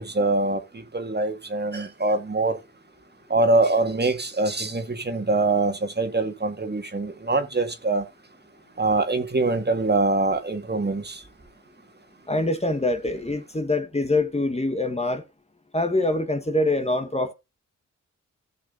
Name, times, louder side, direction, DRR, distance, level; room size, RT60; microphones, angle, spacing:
voice 1, 0.0-2.6 3.3-8.0 8.8-11.2, right 2 dB, 35° right, 1.9 m, -24 dB
voice 2, 12.3-15.2 15.7-17.3, left 2 dB, 20° left, 1.3 m, -24 dB
17.5 x 6.3 x 2.6 m
cardioid pair, 60°, 31 cm